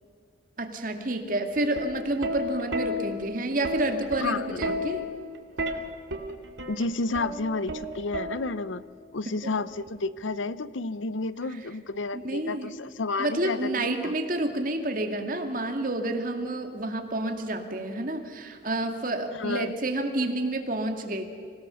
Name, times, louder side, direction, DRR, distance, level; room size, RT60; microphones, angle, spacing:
voice 1, 0.6-5.1 9.3-9.5 12.1-12.7 13.2-21.2, right 2 dB, 45° right, 5 dB, 2.1 m, -29 dB
Plucked string instrument, 1.6-8.8 9.9-10.2, left 1 dB, 75° right, 2.3 m, -33 dB
voice 2, 4.2-4.7 6.7-8.8 9.1-14.1 19.3-19.7, left 3 dB, 85° left, 16 dB, 0.7 m, -31 dB
26.0 x 17.0 x 7.0 m, 2.1 s
head